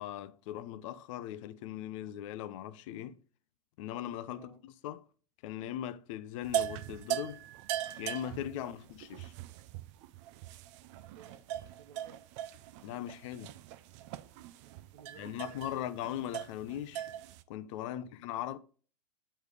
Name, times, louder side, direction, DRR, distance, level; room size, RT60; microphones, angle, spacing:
voice 1, 0.0-3.2 3.8-5.0 5.4-7.4 8.0-9.3 12.8-13.5 15.2-17.1 17.5-18.6, left 11 dB, 50° left, 0.5 m, -39 dB
voice 2, 4.3-4.6 8.5-8.8 11.1-12.2 14.6-15.9 17.9-18.1, right 8 dB, 75° right, 1.0 m, -58 dB
sound 1, 6.4-17.4, right 12 dB, 45° right, 0.4 m, -40 dB
6.6 x 3.3 x 5.0 m
hypercardioid pair, 120°, 21 cm